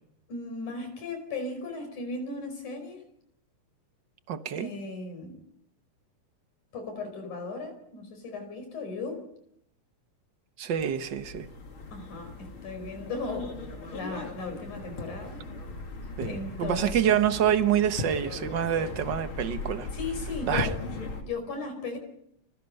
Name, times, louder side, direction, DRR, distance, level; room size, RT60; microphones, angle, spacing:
voice 1, 0.3-3.0 4.5-5.4 6.7-9.3 11.9-15.5 16.2-17.2 19.9-20.8 21.1-22.0, left 3 dB, 70° left, 6.5 m, -36 dB
voice 2, 4.3-4.7 10.6-11.5 16.2-19.9 20.5-20.7, right 9 dB, 60° right, 1.1 m, -26 dB
sound 1, 10.8-21.2, left 3 dB, 45° left, 3.4 m, -38 dB
29.0 x 21.5 x 5.5 m
omnidirectional pair, 3.6 m